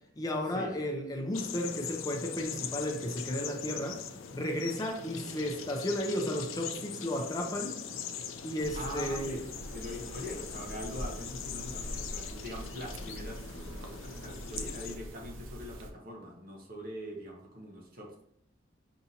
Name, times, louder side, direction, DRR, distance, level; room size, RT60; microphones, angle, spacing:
voice 1, 0.2-4.0 4.3-7.8 8.4-9.4, left 1 dB, 20° left, 2 dB, 0.5 m, -33 dB
sound 1, 1.3-15.0, left 7 dB, 85° left, 0.4 m, -42 dB
sound 2, 8.6-15.9, right 1 dB, 80° right, 0.5 m, -43 dB
voice 2, 8.7-9.4 9.7-18.2, equal, 50° right, 0 dB, 0.9 m, -42 dB
5.6 x 2.6 x 2.8 m, 0.73 s
head